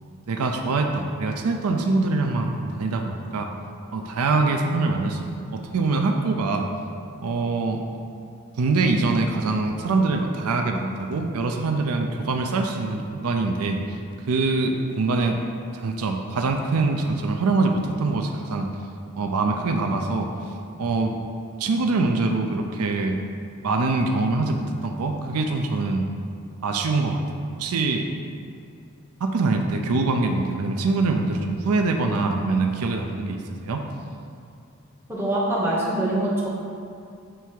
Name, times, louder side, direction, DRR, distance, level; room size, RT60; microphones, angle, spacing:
voice 1, 0.0-3.5 3.9-6.7 7.2-7.8 8.6-14.0 14.3-15.4 15.7-18.7 19.2-20.3 20.8-21.2 21.6-23.2 23.6-26.1 26.6-27.2 27.6-28.0 29.2-33.8, right 3 dB, 85° right, 4 dB, 0.5 m, -24 dB
voice 2, 35.1-36.5, right 1 dB, 10° right, -7 dB, 1.1 m, -24 dB
7.5 x 3.4 x 4.6 m, 2.4 s
head